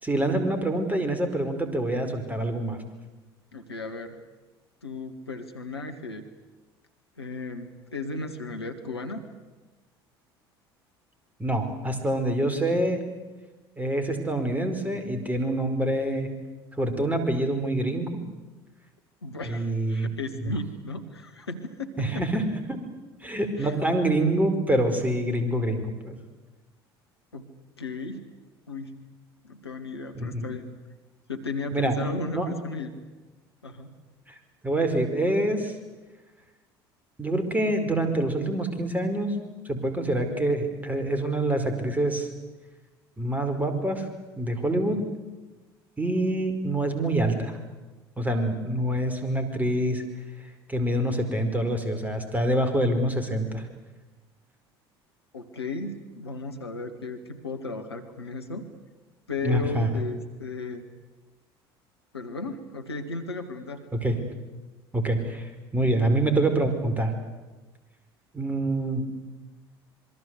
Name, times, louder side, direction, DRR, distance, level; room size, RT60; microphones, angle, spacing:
voice 1, 0.0-2.8 11.4-13.0 13.8-16.3 16.8-18.2 19.5-20.1 20.4-20.5 22.0-22.4 22.7-22.8 23.2-26.2 30.1-30.4 31.7-32.0 32.3-32.5 34.6-35.8 37.2-39.4 39.6-42.3 43.2-44.1 44.4-45.0 46.0-47.6 48.2-50.0 50.7-53.7 59.4-59.9 64.0-64.2 64.9-67.1 68.3-69.0, right 1 dB, 10° right, 7 dB, 4.9 m, -26 dB
voice 2, 3.5-4.2 4.8-6.2 7.2-9.2 19.2-22.4 23.6-23.7 27.3-27.5 27.8-28.2 28.7-29.0 29.4-30.8 31.3-33.0 33.6-33.9 55.3-58.7 59.3-60.8 62.1-63.9, left 3 dB, 80° left, 5 dB, 1.9 m, -35 dB
26.5 x 23.5 x 8.2 m, 1.2 s
figure-of-eight pair, 65°, 13 cm